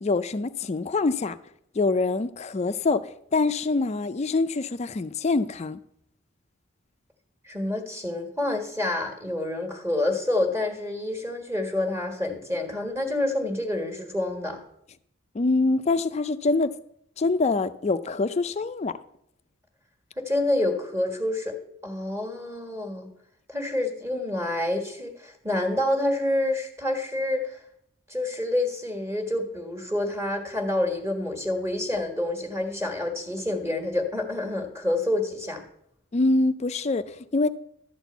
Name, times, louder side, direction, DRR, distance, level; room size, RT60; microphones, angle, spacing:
voice 1, 0.0-1.4 1.7-5.8 15.3-16.7 17.2-19.0 36.1-37.5, left 3 dB, 30° left, 12 dB, 0.4 m, -25 dB
voice 2, 7.5-14.6 20.2-21.6 21.8-23.1 23.5-27.6 28.1-35.6, left 1 dB, 15° right, 4 dB, 1.5 m, -28 dB
12.0 x 4.3 x 8.1 m, 0.73 s
head